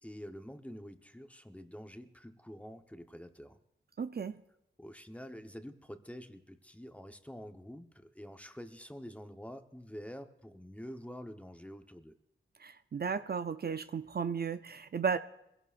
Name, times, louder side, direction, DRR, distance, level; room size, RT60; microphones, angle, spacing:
voice 1, 0.0-3.6 4.8-12.1, equal, 5° left, 7 dB, 0.9 m, -47 dB
voice 2, 4.0-4.3 12.6-15.2, right 6 dB, 50° right, 11 dB, 0.5 m, -34 dB
23.5 x 16.5 x 2.5 m, 0.84 s
wide cardioid pair, 75°, 20 cm